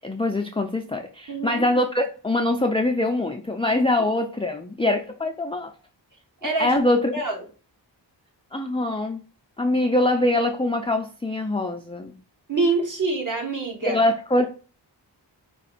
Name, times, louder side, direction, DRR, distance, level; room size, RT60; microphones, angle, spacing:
voice 1, 0.0-5.7 6.4-7.1 8.5-9.2 9.6-12.1 13.9-14.5, left 1 dB, 15° left, 0.5 m, -23 dB
voice 2, 1.3-1.6 6.4-6.8 7.1-7.4 12.5-14.0, right 3 dB, 45° right, 1.7 m, -25 dB
5.0 x 2.4 x 4.1 m
cardioid pair, 45°, 43 cm